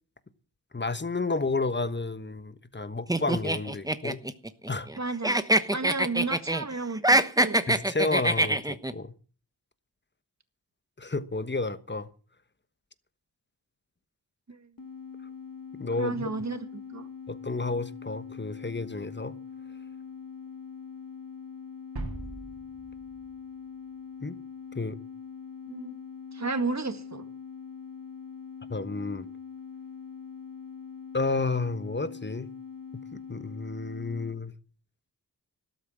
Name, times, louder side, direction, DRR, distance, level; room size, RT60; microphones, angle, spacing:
voice 1, 0.7-4.2 4.7-4.9 7.7-9.1 11.0-12.1 15.8-16.3 17.3-19.3 24.2-24.4 24.7-25.0 28.7-29.3 31.1-32.5 33.1-34.5, left 3 dB, 25° left, 1.2 m, -31 dB
sound 1, 3.1-5.0 5.2-6.6 6.9-8.9, right 1 dB, 10° right, 1.0 m, -24 dB
voice 2, 5.0-5.4 5.7-7.6 14.5-14.7 16.0-17.1 25.7-26.0 26.3-27.2, right 3 dB, 45° right, 2.0 m, -33 dB
sound 2, 14.8-34.4, left 6 dB, 55° left, 1.5 m, -43 dB
sound 3, 22.0-24.0, right 2 dB, 70° right, 3.7 m, -40 dB
13.0 x 12.5 x 7.4 m
wide cardioid pair, 80°, 39 cm